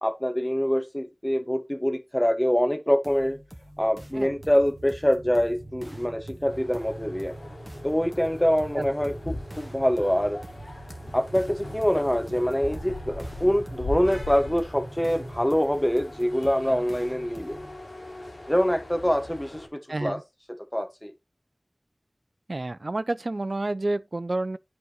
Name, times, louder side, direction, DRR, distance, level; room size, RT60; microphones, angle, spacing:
voice 1, 0.0-3.4 3.8-7.3 7.8-10.4 11.1-17.6 18.5-20.2 20.7-21.1, equal, 15° left, 1.5 m, -25 dB
sound 1, 3.0-17.8, equal, 15° right, 1.4 m, -47 dB
sound 2, 3.9-15.5, right 2 dB, 85° right, 1.4 m, -44 dB
sound 3, 6.5-19.7, left 1 dB, 85° left, 2.6 m, -40 dB
voice 2, 19.9-20.2 22.5-24.6, right 2 dB, 65° right, 0.3 m, -29 dB
10.5 x 4.8 x 3.0 m
wide cardioid pair, 45°, 0 cm